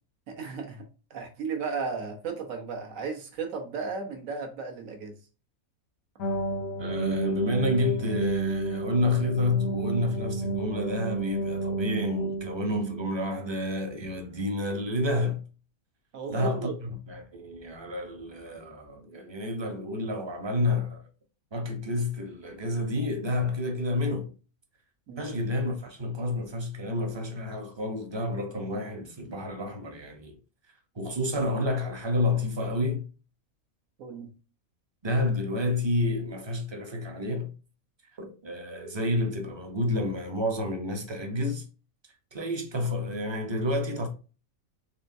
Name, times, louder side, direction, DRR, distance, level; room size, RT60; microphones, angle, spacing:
voice 1, 0.3-0.8 1.1-5.1 16.1-16.7 25.1-25.5 34.0-34.3, right 4 dB, 70° right, 1.4 m, -35 dB
sound 1, 6.2-13.3, right 3 dB, 90° left, 1.2 m, -31 dB
voice 2, 6.8-15.4 16.3-21.0 21.5-24.3 25.2-30.4 31.0-33.0 35.0-37.5 38.2-41.6 42.3-44.1, left 1 dB, 30° right, 0.5 m, -29 dB
4.3 x 3.3 x 2.6 m
omnidirectional pair, 1.5 m